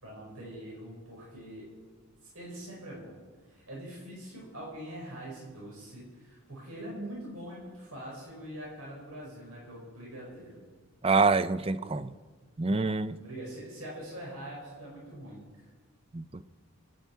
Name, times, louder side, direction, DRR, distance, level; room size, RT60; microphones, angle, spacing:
voice 1, 0.0-1.6 2.2-3.2 3.4-10.6 11.7-11.9 13.2-15.7, right 1 dB, 80° right, -4 dB, 5.0 m, -43 dB
voice 2, 11.0-12.1 12.6-13.2 16.1-16.4, right 4 dB, 25° right, 14 dB, 0.4 m, -26 dB
26.5 x 9.2 x 4.6 m, 1.4 s
head